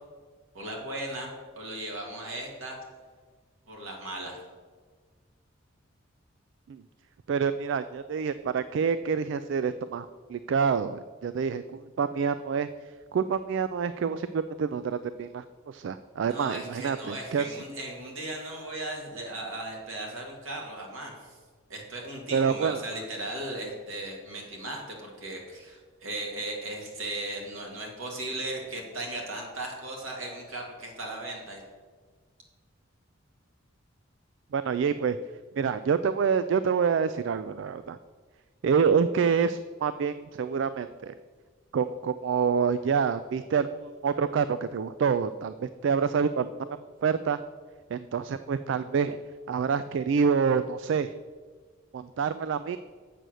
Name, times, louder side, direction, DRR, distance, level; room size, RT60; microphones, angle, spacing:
voice 1, 0.5-1.3 1.6-2.8 3.7-4.4 16.2-21.3 21.7-31.6, right 1 dB, 80° right, 0 dB, 2.3 m, -37 dB
voice 2, 7.3-12.7 13.1-17.6 22.3-22.8 34.5-35.2 35.6-38.0 38.6-41.1 41.7-46.7 47.0-47.4 47.9-49.2 49.5-51.1 51.9-52.8, right 6 dB, 60° right, 12 dB, 0.3 m, -27 dB
7.6 x 6.7 x 6.3 m, 1.5 s
head